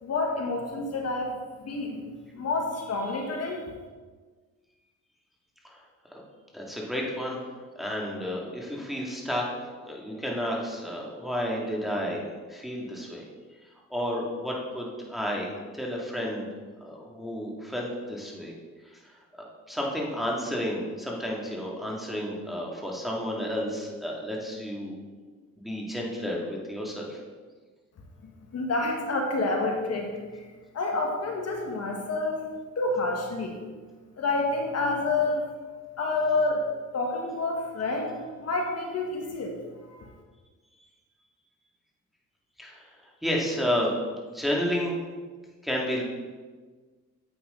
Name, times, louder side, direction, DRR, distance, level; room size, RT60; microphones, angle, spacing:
voice 1, 0.0-1.4 1.6-3.6 28.5-30.4 30.7-32.4 32.8-33.6 34.2-35.5 36.0-36.6 36.9-38.1 38.4-39.6 39.9-40.0, left 3 dB, 55° left, 1 dB, 1.6 m, -28 dB
voice 2, 6.5-7.4 7.8-9.5 9.9-12.2 12.5-13.3 13.9-16.5 16.8-18.5 18.8-19.1 19.7-25.0 25.6-27.2 42.6-43.9 44.3-44.9 45.6-46.0, equal, ahead, -3 dB, 2.4 m, -31 dB
9.6 x 8.2 x 3.9 m, 1.4 s
cardioid pair, 90°, 30 cm